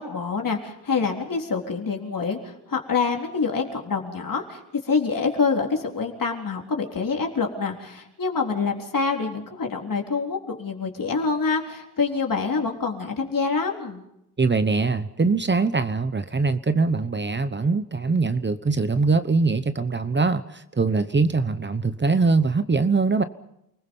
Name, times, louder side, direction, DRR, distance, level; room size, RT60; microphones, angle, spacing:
voice 1, 0.0-14.0, left 4 dB, 60° left, 1 dB, 3.9 m, -26 dB
voice 2, 14.4-23.2, right 4 dB, 30° right, 12 dB, 0.9 m, -22 dB
29.0 x 20.5 x 5.5 m, 0.82 s
wide cardioid pair, 115°, 37 cm